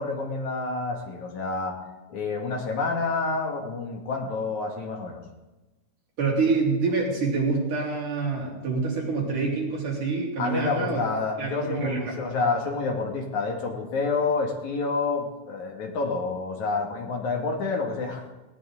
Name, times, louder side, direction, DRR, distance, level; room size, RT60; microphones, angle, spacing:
voice 1, 0.0-1.8 2.1-5.2 10.4-18.2, left 4 dB, 65° left, 1 dB, 3.5 m, -28 dB
voice 2, 6.2-11.0 11.4-12.2, right 4 dB, 75° right, -3 dB, 5.5 m, -26 dB
18.5 x 18.0 x 3.9 m, 1.1 s
omnidirectional pair, 3.6 m